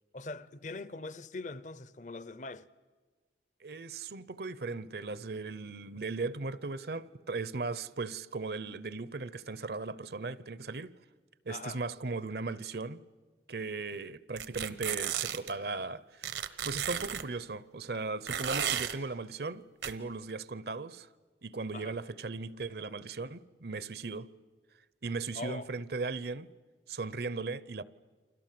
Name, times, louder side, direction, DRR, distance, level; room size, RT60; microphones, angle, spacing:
voice 1, 0.1-2.7 11.5-11.8 21.7-22.0 25.3-25.7, left 2 dB, 40° left, 0.8 m, -42 dB
voice 2, 3.6-10.9 11.5-13.0 13.5-21.1 21.4-24.3 25.0-26.5 26.9-27.8, right 3 dB, 60° right, 0.7 m, -37 dB
sound 1, 14.4-15.5 16.2-17.2 18.3-18.9 19.8-19.9, right 9 dB, 80° right, 1.2 m, -33 dB
29.5 x 25.5 x 7.6 m
head